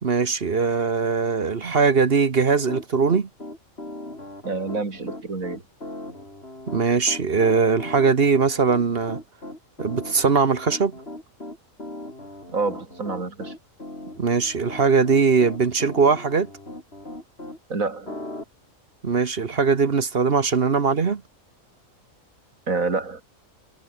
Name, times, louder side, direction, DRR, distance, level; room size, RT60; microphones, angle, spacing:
voice 1, 0.0-3.3 6.7-9.2 9.8-10.9 14.2-16.5 19.0-21.2, right 5 dB, 45° right, 1.3 m, -20 dB
Piano, 2.4-17.6 18.1-18.4, left 1 dB, 45° left, 6.6 m, -38 dB
voice 2, 4.4-5.6 12.5-13.5 17.7-18.2 22.7-23.2, right 4 dB, 75° right, 3.7 m, -27 dB
omnidirectional pair, 1.4 m